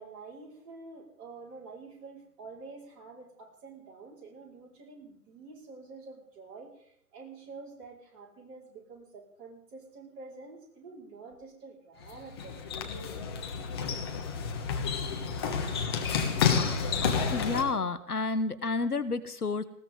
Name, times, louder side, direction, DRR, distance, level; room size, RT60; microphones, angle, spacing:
voice 1, 0.0-12.8 14.4-14.5, right 4 dB, 20° right, -3 dB, 4.8 m, -48 dB
sound 1, 12.0-17.6, left 6 dB, 15° left, 1.2 m, -30 dB
voice 2, 17.3-19.6, left 3 dB, 70° left, 12 dB, 1.4 m, -30 dB
20.0 x 18.5 x 3.7 m, 0.69 s
figure-of-eight pair, 145°, 47 cm